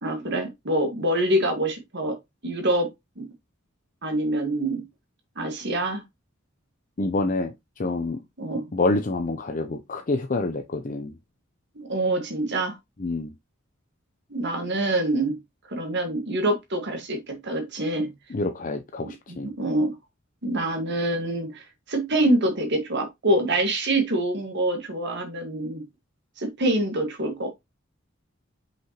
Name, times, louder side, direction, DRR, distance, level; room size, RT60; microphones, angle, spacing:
voice 1, 0.0-2.2 2.4-2.9 3.2-3.3 4.0-4.8 5.3-6.0 8.0-8.1 8.4-8.6 11.7-12.8 14.3-15.4 15.7-18.1 19.0-19.9 20.4-25.8 26.4-27.5, right 1 dB, 60° right, 1.7 m, -25 dB
voice 2, 7.0-8.2 8.7-11.1 13.0-13.3 18.3-19.5, left 2 dB, 40° left, 0.7 m, -27 dB
5.7 x 5.7 x 2.9 m
head